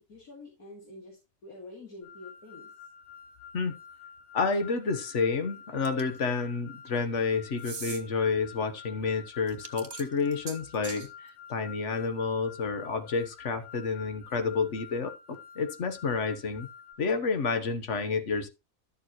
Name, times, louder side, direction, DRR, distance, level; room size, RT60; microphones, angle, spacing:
voice 1, 0.1-2.9, left 2 dB, 85° left, 3.0 m, -47 dB
sound 1, 2.0-16.9, left 7 dB, 5° left, 2.9 m, -49 dB
voice 2, 4.3-15.1 15.5-16.7 17.0-18.5, left 4 dB, 55° left, 1.5 m, -29 dB
sound 2, 5.8-6.2 7.6-8.0 9.5-11.1, right 5 dB, 35° right, 1.1 m, -41 dB
12.5 x 7.0 x 3.1 m
omnidirectional pair, 1.5 m